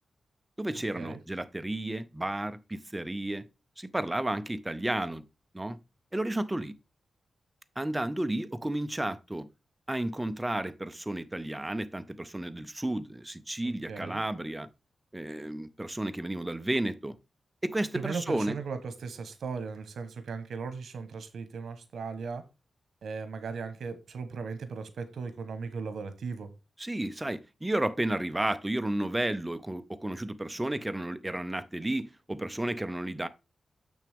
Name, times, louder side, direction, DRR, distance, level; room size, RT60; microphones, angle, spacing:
voice 1, 0.6-3.4 3.8-5.2 5.5-5.8 6.1-6.7 7.8-9.5 9.9-14.7 15.1-17.2 17.6-18.6 26.8-33.3, right 1 dB, 10° right, 0.5 m, -32 dB
voice 2, 13.6-14.2 17.9-22.4 23.0-26.5, right 5 dB, 80° right, 1.0 m, -37 dB
6.9 x 6.1 x 3.5 m
wide cardioid pair, 120°, 0 cm